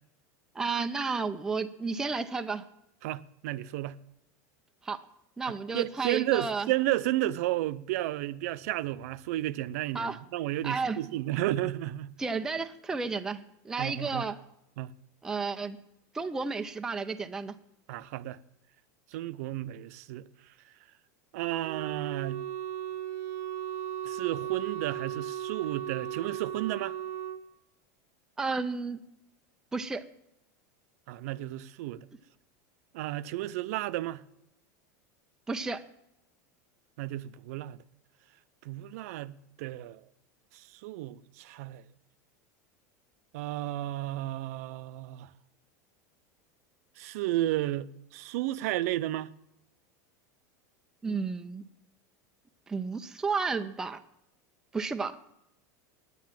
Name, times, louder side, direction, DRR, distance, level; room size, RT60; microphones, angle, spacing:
voice 1, 0.6-2.6 4.8-5.0 5.4-6.7 9.9-10.2 10.6-11.0 12.2-14.4 15.2-15.8 16.1-17.5 28.4-29.0 29.7-30.0 35.5-35.8 51.0-51.6 52.7-54.0 54.7-55.2, right 4 dB, 5° right, 0.4 m, -32 dB
voice 2, 3.0-4.0 5.5-12.1 13.8-14.3 14.8-14.9 17.9-18.4 19.1-20.3 21.3-22.4 24.0-26.9 31.1-32.1 32.9-34.2 37.0-37.8 38.6-40.0 40.5-41.8 43.3-45.3 47.0-49.3, right 15 dB, 60° right, 0.5 m, -32 dB
Wind instrument woodwind instrument, 21.6-27.4, right 11 dB, 30° right, 0.8 m, -36 dB
9.9 x 9.4 x 7.4 m
supercardioid pair, 170°, 9 cm